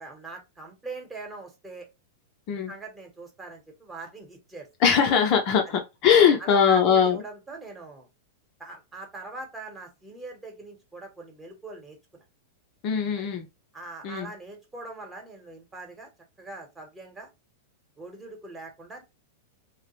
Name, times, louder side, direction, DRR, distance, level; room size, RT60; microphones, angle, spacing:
voice 1, 0.0-1.9 2.7-4.9 5.6-5.8 6.4-8.1 8.6-12.2 13.2-13.3 13.7-16.1 16.4-17.3 18.0-19.0, right 2 dB, 15° right, 1.0 m, -42 dB
voice 2, 4.8-7.2 12.8-13.5 14.0-14.3, left 7 dB, 45° left, 0.6 m, -21 dB
2.3 x 2.0 x 3.0 m
hypercardioid pair, 105°, 0 cm